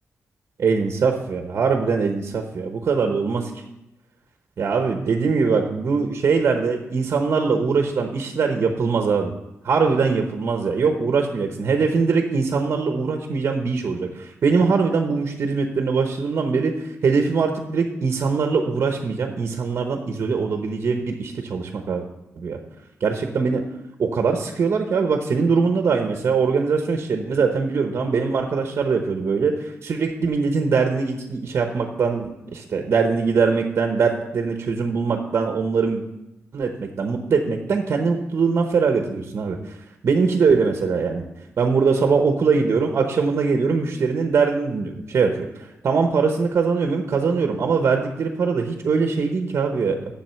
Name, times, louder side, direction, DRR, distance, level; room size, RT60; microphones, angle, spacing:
voice 1, 0.6-3.5 4.6-9.3 9.6-22.0 22.4-22.6 23.0-23.6 24.0-36.0 36.5-39.8 40.0-41.2 41.6-49.9, right 5 dB, 50° right, 4 dB, 1.0 m, -22 dB
7.5 x 7.2 x 6.9 m, 0.93 s
wide cardioid pair, 165°, 5 cm